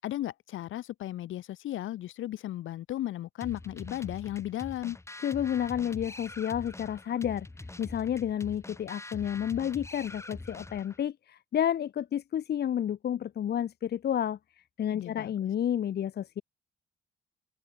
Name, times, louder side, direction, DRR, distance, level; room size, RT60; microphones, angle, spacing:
voice 1, 0.0-5.0 14.9-15.3, left 13 dB, 80° left, 2.5 m, -35 dB
sound 1, 3.4-11.0, left 2 dB, 15° left, 2.7 m, -44 dB
voice 2, 5.2-7.5 7.8-14.4 14.8-16.4, left 10 dB, 55° left, 1.0 m, -30 dB
cardioid pair, 90°, 20 cm